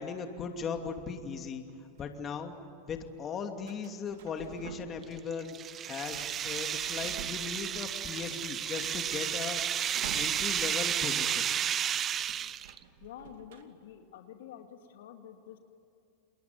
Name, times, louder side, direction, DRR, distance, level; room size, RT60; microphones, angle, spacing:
voice 1, 0.0-1.6 2.0-2.5 2.9-5.6 5.9-9.9 10.1-11.5, left 5 dB, 30° left, 5 dB, 2.6 m, -38 dB
sound 1, 1.7-2.5 3.6-5.1 5.4-7.9 8.3-8.4 8.6-10.8 11.1-11.3 11.5-13.6, right 7 dB, 75° right, 2.6 m, -49 dB
sound 2, 5.0-12.8, right 9 dB, 30° right, 0.7 m, -32 dB
voice 2, 13.0-15.6, left 9 dB, 80° left, 5 dB, 2.4 m, -48 dB
29.0 x 21.0 x 9.6 m, 2.7 s
supercardioid pair, 125°, 0 cm